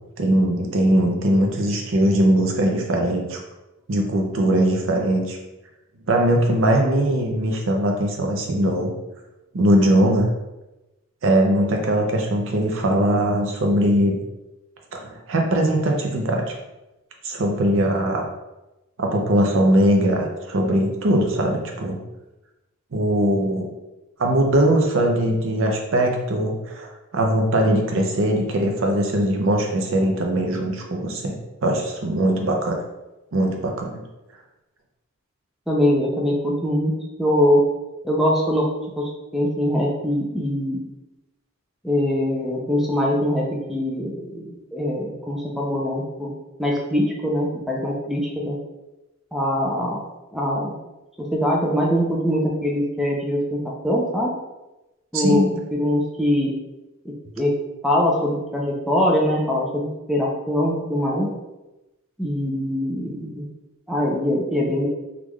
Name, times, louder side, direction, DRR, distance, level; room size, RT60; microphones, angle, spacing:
voice 1, 0.2-3.4 3.9-5.4 6.1-8.9 9.5-10.3 11.2-14.2 14.9-16.5 17.2-18.3 19.0-22.0 22.9-23.6 24.2-32.8 33.3-34.0 55.1-55.5, right 1 dB, 65° right, 2 dB, 0.6 m, -20 dB
voice 2, 35.7-37.6 38.0-38.7 39.0-40.8 41.8-46.3 46.6-48.6 49.3-50.0 50.3-50.7 51.2-54.3 55.1-56.5 57.0-57.5 57.8-61.3 62.2-63.5 63.9-64.9, left 1 dB, ahead, -3 dB, 0.4 m, -23 dB
3.5 x 2.4 x 3.1 m, 1.0 s
head